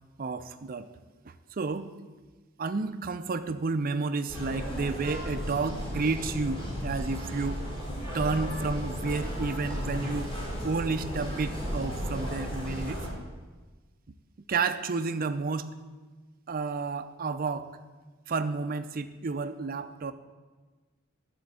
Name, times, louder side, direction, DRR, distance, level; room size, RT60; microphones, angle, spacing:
voice 1, 0.2-0.9 1.3-1.9 2.6-7.6 8.1-10.3 10.6-13.1 14.5-15.7 16.5-17.7 18.3-20.1, right 4 dB, 45° right, 10 dB, 0.5 m, -31 dB
sound 1, 4.3-13.1, equal, 25° left, 3.5 m, -34 dB
12.0 x 4.5 x 7.5 m, 1.3 s
head